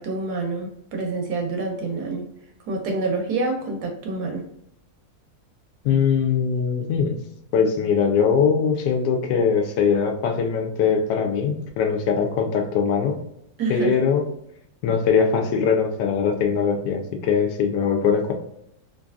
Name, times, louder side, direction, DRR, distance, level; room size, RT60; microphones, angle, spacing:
voice 1, 0.0-2.3 2.7-4.4 13.6-14.0, right 3 dB, 70° right, 2 dB, 1.1 m, -27 dB
voice 2, 5.8-7.2 7.5-13.1 13.7-14.2 14.8-18.3, left 6 dB, 75° left, 4 dB, 1.2 m, -21 dB
3.2 x 2.6 x 2.3 m, 0.77 s
omnidirectional pair, 1.9 m